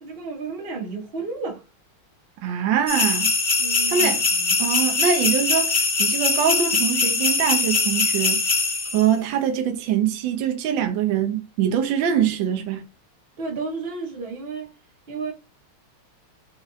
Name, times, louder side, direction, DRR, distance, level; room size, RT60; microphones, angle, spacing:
voice 1, 0.0-1.6 3.6-4.5 13.4-14.7 15.1-15.3, right 4 dB, 40° right, 0.9 m, -32 dB
voice 2, 2.4-3.3 3.9-4.2 4.6-8.5 8.9-12.9, right 8 dB, 70° right, 1.3 m, -23 dB
sound 1, 2.9-9.1, left 4 dB, 70° left, 0.5 m, -22 dB
4.2 x 2.5 x 2.7 m
omnidirectional pair, 2.4 m